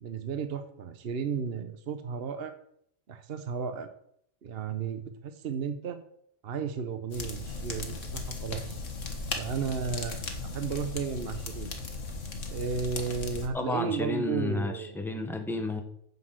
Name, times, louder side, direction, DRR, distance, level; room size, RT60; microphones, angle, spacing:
voice 1, 0.0-2.5 3.1-3.9 4.4-6.0 6.4-8.8 9.4-11.7 12.5-15.0, right 6 dB, 55° right, 9 dB, 1.1 m, -34 dB
sound 1, 7.1-13.5, left 3 dB, 80° left, 1.9 m, -37 dB
voice 2, 13.5-15.8, left 2 dB, ahead, 5 dB, 1.3 m, -31 dB
9.3 x 6.4 x 7.6 m, 0.69 s
omnidirectional pair, 1.3 m